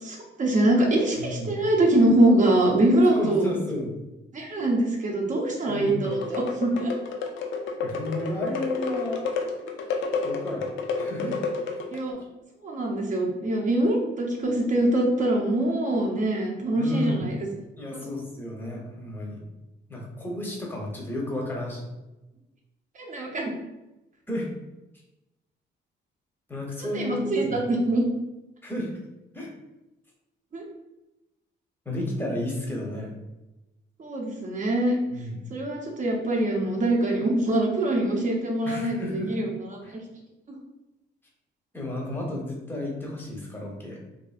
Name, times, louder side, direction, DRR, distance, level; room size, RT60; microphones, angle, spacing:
voice 1, 0.0-3.5 4.3-6.9 11.9-12.2 12.6-17.5 22.9-23.5 26.8-28.1 30.5-30.6 34.0-35.0 35.5-39.8, right 1 dB, 40° right, -1 dB, 0.8 m, -24 dB
voice 2, 1.2-1.6 3.0-3.9 5.7-6.2 7.8-9.2 10.2-10.7 11.0-11.4 11.7-11.8 16.8-17.2 17.8-19.4 19.9-21.8 24.3-24.5 26.5-27.6 28.6-28.9 29.3-29.5 31.8-33.1 35.1-35.4 38.6-39.3 39.8-39.9 41.7-44.0, left 1 dB, 10° left, -2 dB, 0.8 m, -32 dB
sound 1, 6.0-12.1, left 4 dB, 75° left, 0.5 m, -30 dB
2.6 x 2.6 x 2.4 m, 0.98 s
cardioid pair, 90°, 20 cm